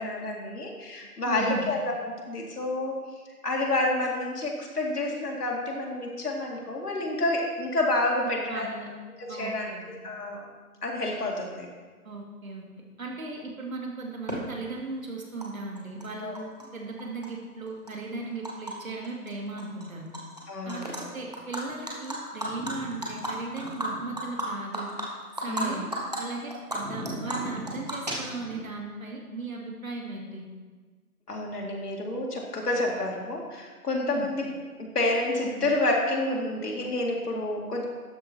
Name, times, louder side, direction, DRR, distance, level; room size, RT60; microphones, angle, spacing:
voice 1, 0.0-3.0 3.4-8.7 9.3-10.5 10.8-11.7 16.2-16.3 20.5-21.0 25.5-25.9 31.3-34.5 34.9-37.8, left 2 dB, 75° left, -1 dB, 2.2 m, -29 dB
voice 2, 1.2-1.7 8.5-8.9 9.3-9.8 12.0-12.6 13.0-20.1 20.6-24.9 25.3-30.4 34.1-34.3, right 3 dB, 60° right, 0 dB, 2.2 m, -37 dB
Animal, 14.3-14.4 15.4-15.5 15.8-16.6 17.0-18.7 19.0-19.3 19.6-20.4 20.7-21.0 21.3-25.6 25.9-26.2 26.5-28.6, right 1 dB, 25° right, 1.0 m, -34 dB
12.0 x 4.9 x 4.3 m, 1.4 s
hypercardioid pair, 180°, 46 cm